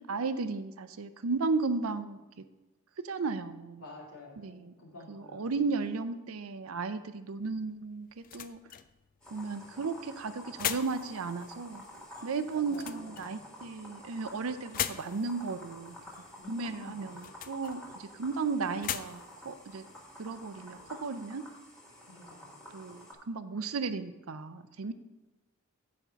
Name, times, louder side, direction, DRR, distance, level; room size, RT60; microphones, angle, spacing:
voice 1, 0.1-2.4 3.0-3.8 4.4-4.7 5.1-8.6 9.3-11.9 12.2-16.0 16.5-19.9 20.2-21.4 22.7-24.9, right 4 dB, 80° right, 11 dB, 0.6 m, -35 dB
voice 2, 3.8-5.5 12.2-13.5 16.4-17.2 22.0-22.7, left 2 dB, 85° left, -3 dB, 2.5 m, -51 dB
sound 1, 7.4-20.9, left 10 dB, 40° left, 0.3 m, -43 dB
sound 2, 9.2-23.1, left 1 dB, 5° left, 1.9 m, -50 dB
8.4 x 5.4 x 5.7 m, 1.1 s
head